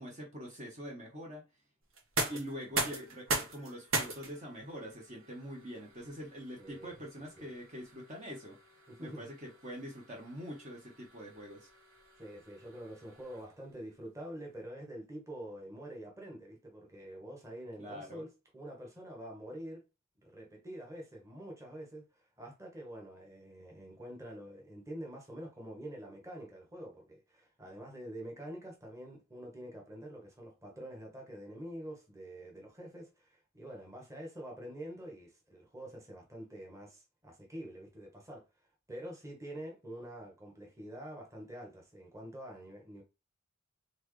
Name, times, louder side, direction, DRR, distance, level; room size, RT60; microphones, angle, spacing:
voice 1, 0.0-1.4 2.3-8.6 9.0-11.7 17.8-18.2, equal, 35° right, 1.1 m, -44 dB
sound 1, 1.9-13.7, right 3 dB, 70° right, 1.6 m, -41 dB
voice 2, 6.6-7.0 7.4-7.5 8.9-9.3 12.2-19.8 20.2-38.4 38.9-43.0, right 1 dB, 15° right, 1.3 m, -46 dB
4.5 x 3.6 x 3.2 m
head